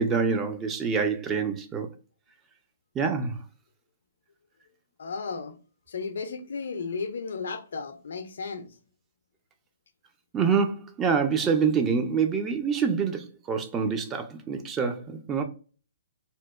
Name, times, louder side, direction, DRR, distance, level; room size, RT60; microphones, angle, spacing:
voice 1, 0.0-1.9 3.0-3.4 10.3-15.4, right 6 dB, 20° right, 0.4 m, -26 dB
voice 2, 5.0-5.6 5.9-8.7, left 4 dB, 65° left, 0.4 m, -34 dB
2.7 x 2.1 x 2.3 m
figure-of-eight pair, 125°, 0 cm